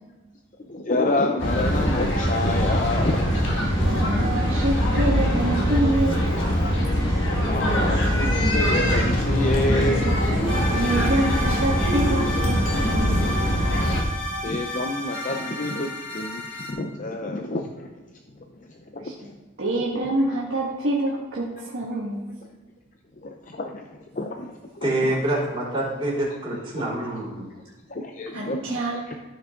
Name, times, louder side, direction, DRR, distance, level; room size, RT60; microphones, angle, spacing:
voice 1, 0.6-3.4 7.4-10.1 14.4-19.3 23.2-24.9 26.7-26.8 27.9-29.2, left 2 dB, 35° left, 3 dB, 0.6 m, -29 dB
sound 1, 1.4-14.0, equal, 60° left, 1.6 m, -22 dB
voice 2, 3.8-6.3 10.7-13.4 19.0-19.3 19.6-22.3 28.3-29.0, right 1 dB, 65° right, -5 dB, 1.5 m, -26 dB
sound 2, 10.5-16.7, equal, 75° left, 3.1 m, -32 dB
voice 3, 24.8-27.5, right 1 dB, 25° right, -7 dB, 3.3 m, -26 dB
13.0 x 6.1 x 3.7 m, 1.3 s
head